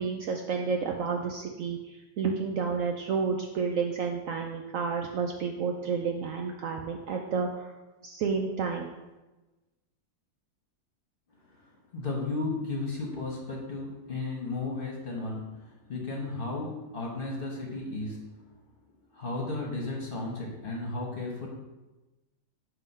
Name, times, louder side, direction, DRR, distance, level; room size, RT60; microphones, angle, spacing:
voice 1, 0.0-7.7 8.0-8.9, right 5 dB, 70° right, 2 dB, 0.8 m, -30 dB
voice 2, 11.9-18.4 19.1-21.5, left 3 dB, 35° left, -2 dB, 1.2 m, -34 dB
7.7 x 2.9 x 5.3 m, 1.1 s
omnidirectional pair, 1.7 m